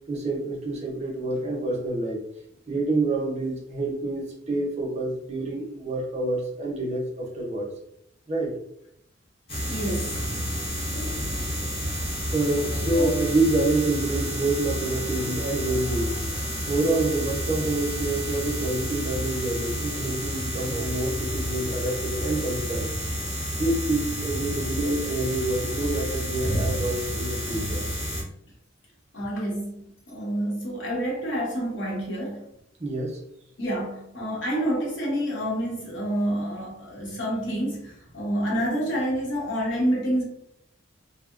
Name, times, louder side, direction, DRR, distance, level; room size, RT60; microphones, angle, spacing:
voice 1, 0.1-2.2 2.7-7.7 8.3-8.5 12.3-16.2 16.7-22.9 23.5-27.9 32.8-33.2, right 2 dB, 35° right, 0 dB, 0.5 m, -27 dB
sound 1, 9.5-28.2, equal, 30° left, 0.7 m, -30 dB
voice 2, 9.7-10.3 12.9-13.1 29.1-32.4 33.6-40.2, equal, 65° left, -3 dB, 0.8 m, -28 dB
2.7 x 2.0 x 2.4 m, 0.73 s
head